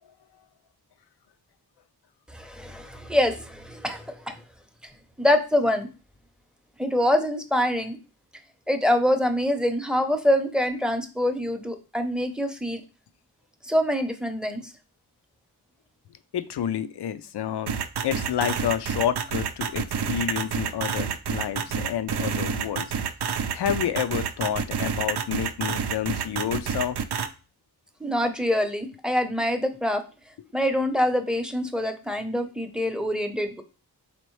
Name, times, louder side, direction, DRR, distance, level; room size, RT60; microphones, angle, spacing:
voice 1, 2.3-4.3 5.2-5.9 6.8-8.0 8.7-12.8 13.6-14.7 28.0-30.0 30.5-33.6, left 1 dB, ahead, 7 dB, 0.6 m, -25 dB
voice 2, 16.3-17.8 18.0-22.9 23.5-27.0, left 9 dB, 80° left, 12 dB, 0.5 m, -29 dB
sound 1, 17.7-27.3, right 7 dB, 80° right, 0.5 m, -28 dB
4.3 x 3.0 x 3.1 m, 0.34 s
cardioid pair, 45°, 39 cm